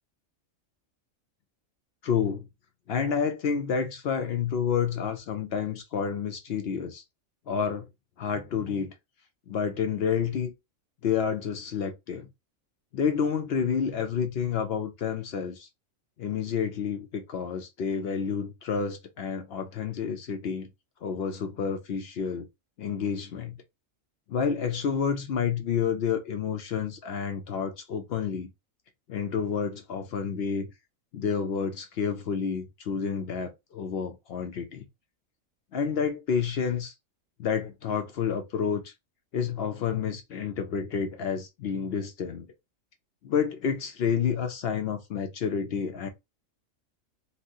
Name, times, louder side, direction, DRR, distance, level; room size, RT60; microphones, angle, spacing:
voice 1, 2.0-2.5 2.9-7.0 7.5-7.9 8.2-8.9 9.5-10.5 11.0-12.3 12.9-15.7 16.2-20.7 21.0-22.5 22.8-23.6 24.3-28.5 29.1-30.7 31.1-34.8 35.7-36.9 37.4-38.9 39.3-42.5 43.2-46.1, left 7 dB, 65° left, 0.7 m, -29 dB
4.1 x 2.0 x 2.6 m
omnidirectional pair, 1.4 m